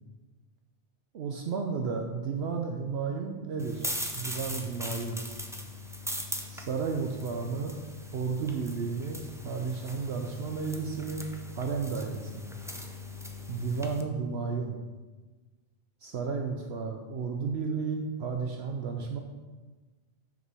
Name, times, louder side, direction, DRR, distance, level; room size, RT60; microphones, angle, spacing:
voice 1, 1.1-3.9 4.1-5.2 6.5-7.8 8.1-12.5 13.5-14.8 16.0-19.2, right 5 dB, 65° right, 3 dB, 0.9 m, -33 dB
sound 1, 3.6-14.0, left 1 dB, 5° right, 0.3 m, -40 dB
6.4 x 5.1 x 6.1 m, 1.3 s
omnidirectional pair, 1.2 m